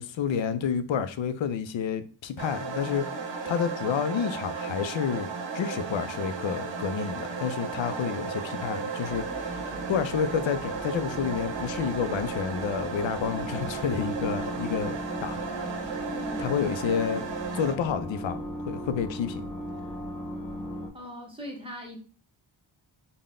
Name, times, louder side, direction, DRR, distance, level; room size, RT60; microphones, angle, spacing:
voice 1, 0.0-16.0 16.4-17.2 17.5-19.5, left 7 dB, 70° left, 0.5 m, -30 dB
sound 1, 2.4-17.7, right 5 dB, 65° right, 0.7 m, -35 dB
voice 2, 7.9-8.2 16.1-16.6 20.9-22.0, equal, 10° right, 0.9 m, -41 dB
sound 2, 9.0-20.9, equal, 15° left, 0.5 m, -37 dB
3.8 x 2.2 x 3.6 m
wide cardioid pair, 145°, 47 cm